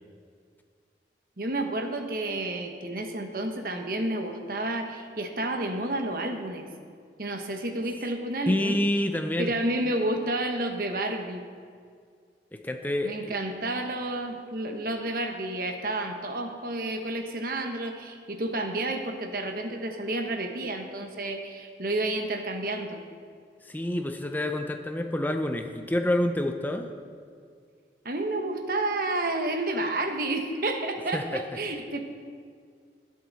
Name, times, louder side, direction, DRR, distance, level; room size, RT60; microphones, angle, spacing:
voice 1, 1.4-6.7 7.2-8.8 9.4-11.4 13.0-23.0 28.0-32.0, right 2 dB, 55° right, 5 dB, 1.1 m, -30 dB
voice 2, 8.5-9.5 12.5-13.3 23.6-26.9 31.1-31.6, left 1 dB, 10° left, 5 dB, 0.5 m, -28 dB
20.0 x 7.7 x 4.1 m, 2.1 s
head